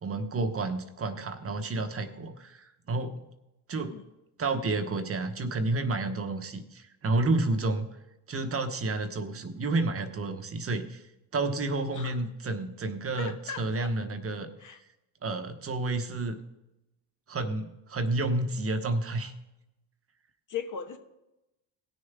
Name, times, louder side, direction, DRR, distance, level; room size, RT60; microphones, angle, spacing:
voice 1, 0.0-3.3 3.7-4.0 4.4-7.9 8.3-11.0 11.3-14.7 15.2-16.4 17.3-19.3, right 2 dB, 35° right, 7 dB, 1.0 m, -30 dB
voice 2, 13.2-13.9 14.6-14.8 20.5-21.0, left 7 dB, 45° left, 6 dB, 1.3 m, -38 dB
17.5 x 6.6 x 3.6 m, 0.93 s
supercardioid pair, 95°, 42 cm